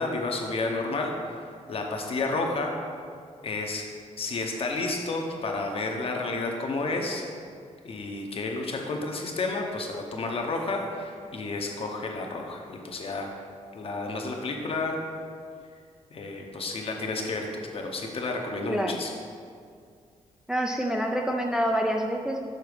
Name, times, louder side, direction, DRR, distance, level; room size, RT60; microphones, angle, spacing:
voice 1, 0.0-1.4 1.7-2.7 3.4-3.9 4.2-7.2 7.8-13.3 13.7-15.0 16.1-19.1, left 3 dB, 45° left, 2 dB, 0.8 m, -31 dB
voice 2, 18.7-19.0 20.5-22.4, equal, 5° right, 2 dB, 0.3 m, -27 dB
6.6 x 4.0 x 4.9 m, 2.2 s
wide cardioid pair, 155°, 13 cm